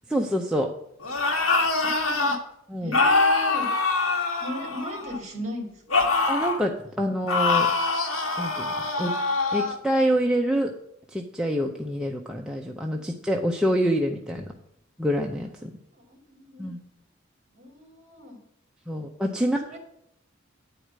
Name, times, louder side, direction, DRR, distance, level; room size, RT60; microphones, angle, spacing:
voice 1, 0.1-0.7 2.7-3.0 6.3-7.7 8.4-9.1 9.5-10.7 11.1-14.5 15.0-15.7 16.6-16.8 18.9-19.7, equal, 5° right, 0 dB, 0.7 m, -26 dB
sound 1, 1.0-2.4 2.9-5.2 5.9-6.6 7.3-9.8, left 3 dB, 80° left, 1.5 m, -24 dB
voice 2, 1.8-2.4 2.8-3.7 4.4-6.1 15.9-16.7 17.6-18.4 18.9-19.0 19.4-19.8, left 1 dB, 35° right, 3 dB, 2.6 m, -37 dB
9.2 x 4.9 x 7.4 m, 0.73 s
head